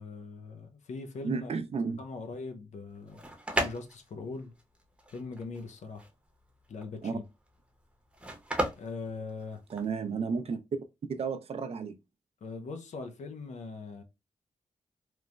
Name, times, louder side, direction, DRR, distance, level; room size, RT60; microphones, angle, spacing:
voice 1, 0.0-1.5 2.0-3.2 3.6-4.5 5.1-6.1 6.7-7.2 8.8-9.6 12.4-14.0, left 4 dB, 70° left, 0.5 m, -41 dB
voice 2, 1.2-2.0 7.0-7.2 9.7-10.6 11.1-12.0, right 5 dB, 55° right, 0.4 m, -32 dB
sound 1, 2.9-10.0, right 1 dB, 10° right, 0.7 m, -36 dB
3.0 x 2.1 x 2.4 m
cardioid pair, 80°, 13 cm